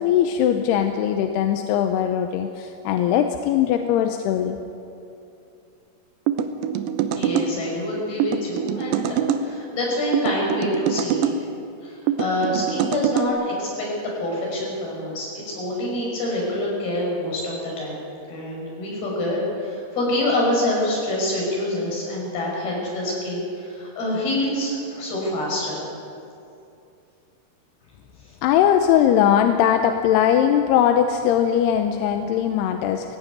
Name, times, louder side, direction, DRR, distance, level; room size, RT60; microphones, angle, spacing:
voice 1, 0.0-4.6 28.4-33.2, left 9 dB, 85° left, 6 dB, 2.8 m, -20 dB
sound 1, 6.3-7.5 8.2-9.4 10.1-11.4 12.1-13.3, right 9 dB, 75° right, 2.3 m, -24 dB
voice 2, 7.1-9.1 9.4-11.3 11.8-13.9 14.2-18.0 18.3-25.8, left 1 dB, 65° left, -3 dB, 7.6 m, -26 dB
17.5 x 16.5 x 9.3 m, 2.7 s
omnidirectional pair, 4.7 m